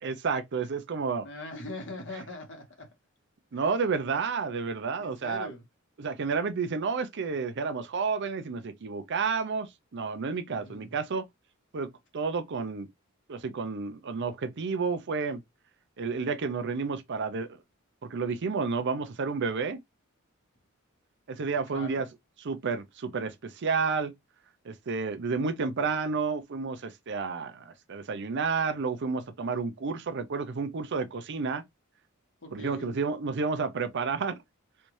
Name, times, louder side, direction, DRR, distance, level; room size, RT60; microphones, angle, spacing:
voice 1, 0.0-1.3 3.5-5.5 6.0-11.3 11.7-12.9 13.3-15.4 16.0-17.6 18.0-19.8 21.3-22.1 22.4-24.1 24.6-31.6 32.5-34.4, right 5 dB, 55° right, 0.5 m, -31 dB
voice 2, 1.2-2.9 3.5-3.6 5.0-5.6 10.5-10.9 21.7-22.0 32.4-32.9, left 2 dB, 60° left, 1.4 m, -42 dB
3.3 x 2.7 x 3.0 m
head